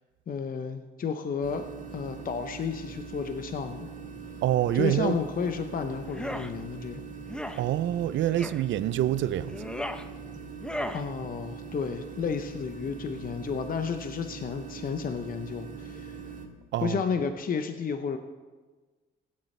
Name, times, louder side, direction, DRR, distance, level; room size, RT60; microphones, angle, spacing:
voice 1, 0.3-1.6 1.9-3.9 4.7-7.0 10.9-16.2 16.8-18.2, left 6 dB, 45° left, 0.7 m, -32 dB
sound 1, 1.4-16.5, right 5 dB, 40° right, 1.8 m, -42 dB
voice 2, 4.4-5.2 7.5-9.6 16.7-17.0, right 12 dB, 70° right, 0.5 m, -26 dB
sound 2, 6.1-6.5 7.3-7.6 8.4-8.6 9.4-10.0 10.6-11.0, left 1 dB, 5° left, 0.7 m, -35 dB
16.0 x 10.5 x 3.3 m
cardioid pair, 90°, 20 cm